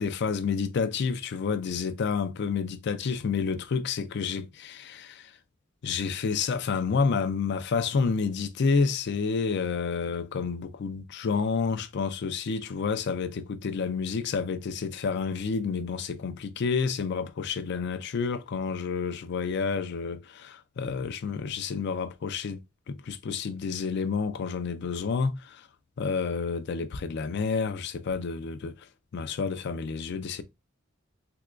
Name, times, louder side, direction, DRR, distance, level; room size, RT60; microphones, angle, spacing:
voice 1, 0.0-5.3 5.8-22.6 22.9-25.7 26.0-28.8 29.1-30.4, left 5 dB, 60° left, 0.4 m, -29 dB
3.5 x 2.8 x 2.4 m
head